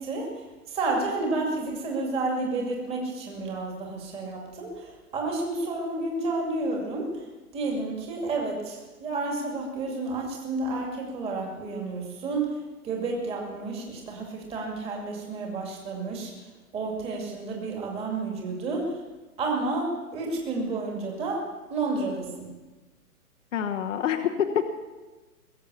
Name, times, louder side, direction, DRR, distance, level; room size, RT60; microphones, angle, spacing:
voice 1, 0.0-7.3 7.5-12.6 12.8-16.5 16.7-19.0 19.4-22.5, right 3 dB, 15° right, -1 dB, 2.4 m, -31 dB
voice 2, 23.5-24.7, left 8 dB, 55° left, 6 dB, 1.2 m, -26 dB
21.5 x 7.6 x 8.5 m, 1.2 s
hypercardioid pair, 160°, 46 cm